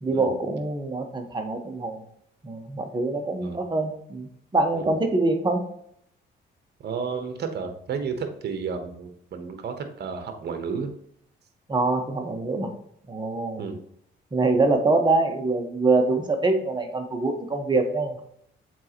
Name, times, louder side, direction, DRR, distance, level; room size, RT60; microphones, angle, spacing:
voice 1, 0.0-2.0 2.4-5.6 11.7-12.7 13.1-13.7 14.3-18.2, right 3 dB, 20° right, 3 dB, 1.2 m, -24 dB
voice 2, 6.8-10.9 13.6-13.8, right 5 dB, 55° right, 7 dB, 1.1 m, -32 dB
7.6 x 4.2 x 3.0 m, 0.71 s
cardioid pair, 90°, 20 cm